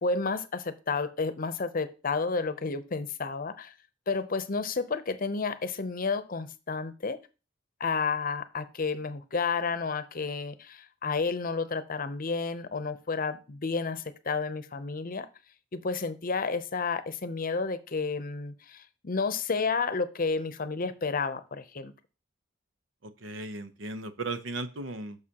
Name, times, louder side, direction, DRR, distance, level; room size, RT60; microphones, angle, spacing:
voice 1, 0.0-3.7 4.1-7.2 7.8-15.3 15.7-21.9, left 4 dB, 45° left, 13 dB, 0.7 m, -31 dB
voice 2, 23.0-25.3, right 2 dB, 85° right, 11 dB, 0.8 m, -36 dB
9.6 x 6.6 x 2.9 m, 0.32 s
head